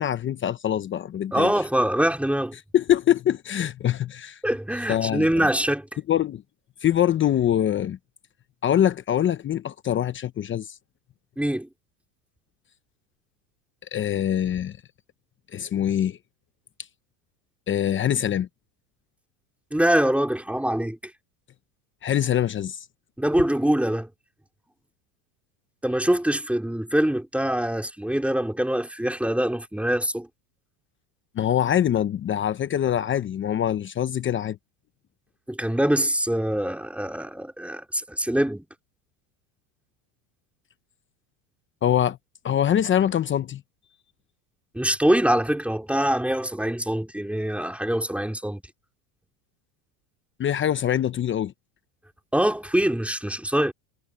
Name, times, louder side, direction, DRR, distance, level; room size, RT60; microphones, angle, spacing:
voice 1, 0.0-1.5 2.7-4.4 4.9-5.5 6.1-6.4 6.8-8.0 8.6-10.7 13.9-14.8 15.5-16.2 17.7-18.5 22.0-22.9 31.4-34.6 41.8-42.2 42.4-43.6 50.4-51.5, left 10 dB, 25° left, 0.8 m, -24 dB
voice 2, 1.3-2.5 4.4-5.9 11.4-11.7 19.7-21.1 23.2-24.1 25.8-30.3 35.5-38.6 44.7-48.6 52.3-53.7, right 1 dB, 5° right, 4.3 m, -24 dB
supercardioid pair, 135°, 46 cm